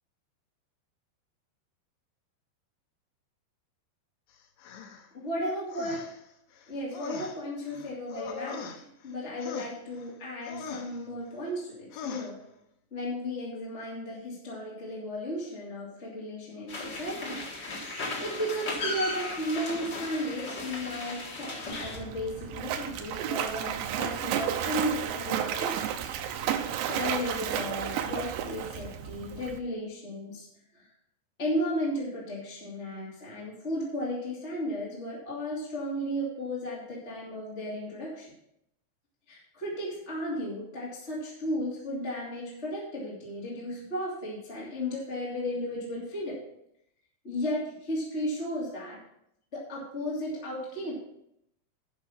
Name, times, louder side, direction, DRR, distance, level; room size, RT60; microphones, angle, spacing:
sound 1, 4.6-5.1 5.7-6.2 6.5-9.1 9.4-10.1 10.4-11.0 11.9-12.3, left 6 dB, 80° left, 2.0 m, -41 dB
voice 1, 5.1-6.0 6.7-8.7 9.0-12.4 12.9-17.4 18.2-26.1 26.8-30.5 30.7-30.8 31.4-38.3 39.3-46.4 47.2-49.0 49.5-51.0, equal, 20° left, -5 dB, 2.1 m, -34 dB
sound 2, 16.7-22.0, left 2 dB, 65° left, 1.1 m, -36 dB
Splash splatter, 21.7-29.6, right 9 dB, 85° right, 3.1 m, -32 dB
11.0 x 6.0 x 5.8 m, 0.77 s
omnidirectional pair, 5.3 m